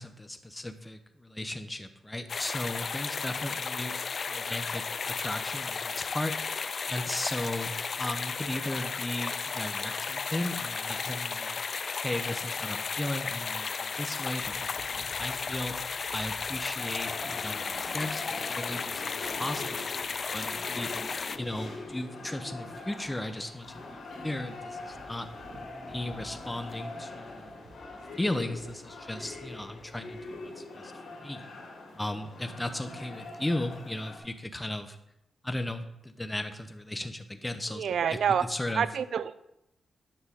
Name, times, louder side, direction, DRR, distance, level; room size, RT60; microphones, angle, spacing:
voice 1, 0.0-4.0 4.3-11.6 12.0-20.9 21.3-23.9 24.2-25.3 25.7-27.5 27.9-30.9 31.2-31.4 31.9-35.0 35.4-37.9 38.4-38.9, left 1 dB, 10° left, 8 dB, 0.8 m, -36 dB
sound 1, 2.3-21.4, left 5 dB, 50° left, 0.3 m, -34 dB
sound 2, 14.4-30.4, right 1 dB, 55° right, 1.8 m, -56 dB
sound 3, 16.7-34.2, left 2 dB, 75° left, 2.3 m, -43 dB
voice 2, 37.7-38.4 38.8-39.3, right 7 dB, 75° right, 15 dB, 0.4 m, -27 dB
9.9 x 6.1 x 3.7 m, 0.85 s
cardioid pair, 85°, 0 cm